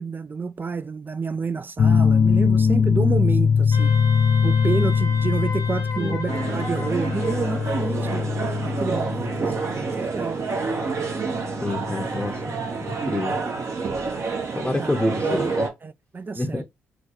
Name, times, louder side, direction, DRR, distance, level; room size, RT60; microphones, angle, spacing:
voice 1, 0.0-3.9 4.4-8.2 8.6-10.5 14.8-14.9 15.8-16.6, right 4 dB, 30° right, 0.4 m, -29 dB
sound 1, 1.8-13.0, left 6 dB, 45° left, 0.4 m, -22 dB
Wind instrument woodwind instrument, 3.7-7.9, left 3 dB, 65° left, 0.8 m, -36 dB
sound 2, 6.3-15.7, right 4 dB, 50° right, 1.0 m, -28 dB
voice 2, 11.6-12.4 12.8-13.4 14.5-15.7 16.4-16.6, left 1 dB, 10° left, 0.8 m, -27 dB
3.9 x 2.2 x 2.9 m
hypercardioid pair, 45°, 6 cm